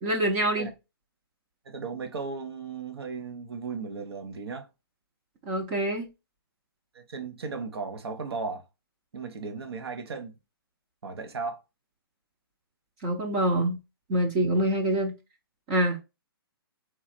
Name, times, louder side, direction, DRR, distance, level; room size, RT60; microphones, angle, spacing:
voice 1, 0.0-0.7 5.5-6.1 13.0-13.8 14.1-15.1 15.7-16.0, right 1 dB, 20° right, 0.6 m, -25 dB
voice 2, 1.6-4.7 6.9-8.6 9.1-10.3 11.0-11.6, right 4 dB, 80° right, 1.0 m, -36 dB
3.9 x 3.1 x 4.1 m
hypercardioid pair, 170°, 13 cm